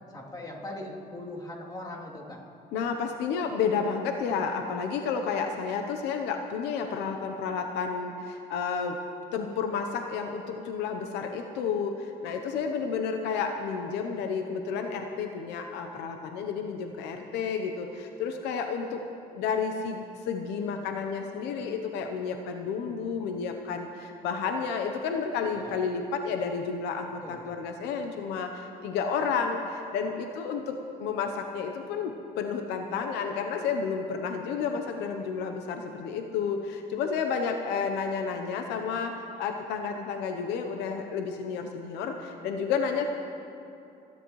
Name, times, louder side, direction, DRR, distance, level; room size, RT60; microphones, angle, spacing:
voice 1, 0.1-2.4 25.5-25.8 27.2-27.6, left 1 dB, 25° left, -4 dB, 3.1 m, -40 dB
voice 2, 2.7-9.0 9.3-19.0 19.3-43.1, left 6 dB, 90° left, 5 dB, 0.9 m, -31 dB
29.0 x 11.0 x 3.2 m, 2.7 s
cardioid pair, 110°, 17 cm